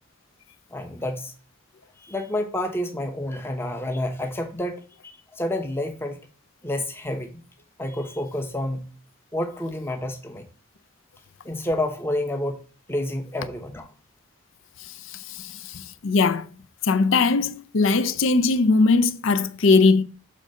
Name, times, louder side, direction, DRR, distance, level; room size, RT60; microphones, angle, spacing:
voice 1, 0.7-1.3 2.0-6.2 6.6-7.3 7.8-8.9 9.3-10.5 11.4-12.6 12.9-13.9, left 1 dB, 10° left, 0.7 m, -29 dB
voice 2, 14.8-16.5 16.8-20.0, left 3 dB, 65° left, 0.5 m, -20 dB
6.4 x 3.7 x 5.4 m
head